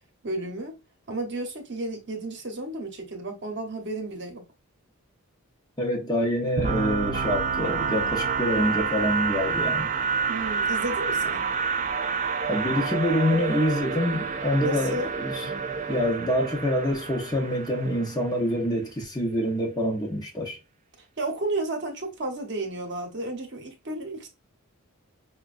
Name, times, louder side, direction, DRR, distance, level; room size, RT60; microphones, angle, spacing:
voice 1, 0.2-0.7 1.1-4.4 9.7-9.8 10.3-11.4 14.6-15.1 21.2-24.3, right 2 dB, 50° right, 0.9 m, -32 dB
voice 2, 5.8-9.9 12.5-15.4 15.9-20.6, equal, 20° left, 0.7 m, -26 dB
sound 1, 6.6-18.3, right 5 dB, 35° right, 0.4 m, -28 dB
5.6 x 2.2 x 2.4 m
head